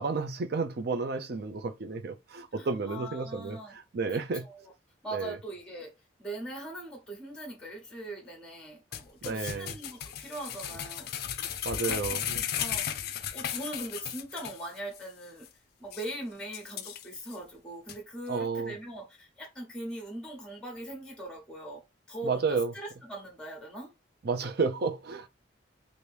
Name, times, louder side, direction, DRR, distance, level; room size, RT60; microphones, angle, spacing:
voice 1, 0.0-4.4 5.1-5.4 9.2-9.7 11.6-12.4 18.3-18.7 22.2-22.7 24.2-25.3, right 4 dB, 50° right, 0.5 m, -31 dB
voice 2, 2.6-3.8 4.1-4.7 5.0-11.1 11.4-13.0 13.3-15.5 15.8-23.9, right 1 dB, 5° left, 0.9 m, -41 dB
sound 1, 8.9-14.7 14.9-15.0 15.5-15.6 15.9-16.1 16.5-17.4 17.9-18.0, left 10 dB, 50° left, 0.4 m, -35 dB
2.9 x 2.6 x 3.3 m
head